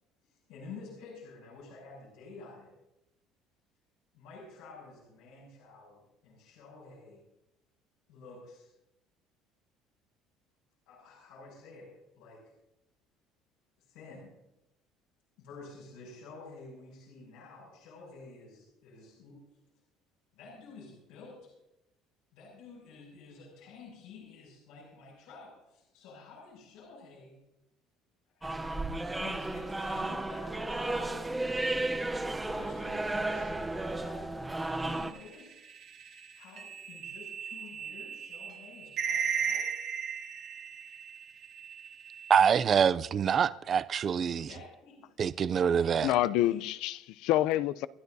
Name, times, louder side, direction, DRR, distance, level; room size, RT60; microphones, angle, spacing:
voice 1, 0.2-2.7 4.1-7.2 8.1-8.7 10.9-11.9 12.2-12.4 13.8-14.3 15.4-19.4 20.3-21.5 22.3-27.4 28.4-31.3 31.7-35.5 36.4-39.7 44.4-46.7, left 4 dB, 85° left, 7.0 m, -50 dB
sound 1, 28.4-35.1, right 2 dB, 5° right, 0.7 m, -33 dB
sound 2, 34.9-41.2 41.6-42.5, right 6 dB, 45° right, 1.7 m, -36 dB
voice 2, 42.3-44.5 45.2-46.1, right 7 dB, 25° right, 0.4 m, -25 dB
voice 3, 46.0-47.9, left 14 dB, 65° left, 0.5 m, -27 dB
29.5 x 12.0 x 2.7 m
cardioid pair, 180°, 0 cm